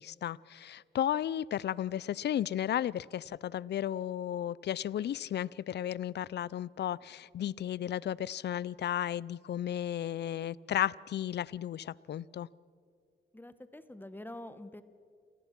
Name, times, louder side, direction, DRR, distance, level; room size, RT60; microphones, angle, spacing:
voice 1, 0.0-12.5, left 11 dB, 65° left, 23 dB, 0.5 m, -34 dB
voice 2, 13.3-14.8, left 1 dB, 10° left, 12 dB, 1.1 m, -46 dB
28.5 x 16.5 x 6.0 m, 2.2 s
cardioid pair, 80°, 19 cm